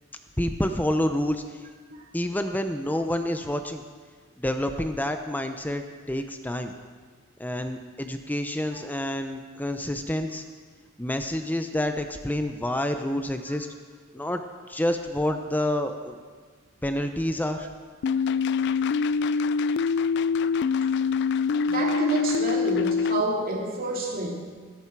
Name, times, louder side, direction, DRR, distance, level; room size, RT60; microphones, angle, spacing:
voice 1, 0.4-1.7 2.1-3.8 4.4-6.7 7.4-10.4 11.0-13.7 14.1-14.4 14.7-16.2 16.8-17.7, left 1 dB, 10° left, 7 dB, 0.6 m, -28 dB
sound 1, 18.0-23.2, left 5 dB, 55° left, 0.3 m, -24 dB
voice 2, 21.7-24.3, right 2 dB, 45° right, -1 dB, 2.7 m, -29 dB
17.5 x 13.5 x 4.7 m, 1.5 s
head